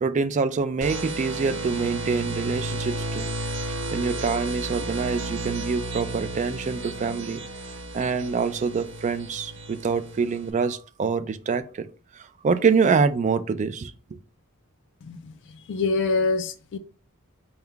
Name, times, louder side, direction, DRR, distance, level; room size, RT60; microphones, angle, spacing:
voice 1, 0.0-3.3 3.9-7.4 7.9-11.9 12.4-13.9, right 5 dB, 35° right, 0.3 m, -25 dB
sound 1, 0.8-10.5, right 1 dB, 60° right, 0.7 m, -33 dB
voice 2, 15.0-15.3 15.7-16.8, left 3 dB, 55° left, 0.3 m, -25 dB
4.3 x 2.3 x 3.7 m
head